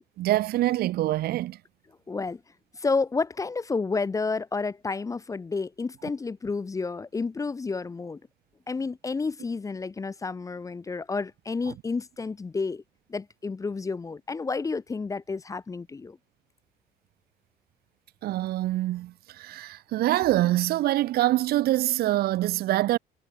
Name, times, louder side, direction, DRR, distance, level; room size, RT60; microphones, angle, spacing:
voice 1, 0.2-1.6 18.2-23.0, right 15 dB, 65° right, 0.6 m, -25 dB
voice 2, 2.1-2.4 2.8-8.2 8.7-12.8 13.1-16.2, left 4 dB, 20° left, 0.6 m, -30 dB
cardioid pair, 110°, 17 cm